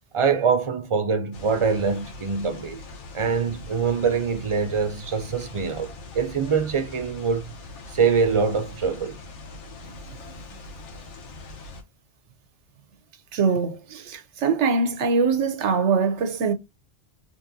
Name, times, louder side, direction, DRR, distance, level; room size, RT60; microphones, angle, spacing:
voice 1, 0.1-2.8 3.1-7.5 7.9-9.2, right 5 dB, 40° right, 0.4 m, -24 dB
sound 1, 1.3-11.8, left 3 dB, 90° left, 1.2 m, -42 dB
voice 2, 13.3-16.5, right 5 dB, 90° right, 1.1 m, -23 dB
4.0 x 3.4 x 2.7 m
omnidirectional pair, 1.2 m